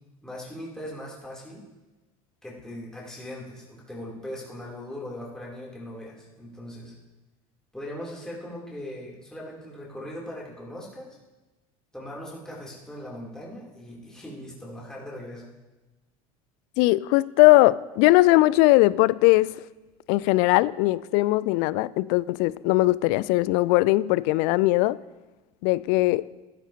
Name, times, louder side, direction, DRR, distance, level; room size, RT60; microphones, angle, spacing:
voice 1, 0.2-1.6 2.4-6.9 7.7-11.2 11.9-15.5, left 1 dB, 5° left, 3.2 m, -39 dB
voice 2, 16.8-19.6 20.1-25.0 25.6-26.3, left 19 dB, 50° left, 0.4 m, -20 dB
14.5 x 14.0 x 2.9 m
figure-of-eight pair, 70°, 19 cm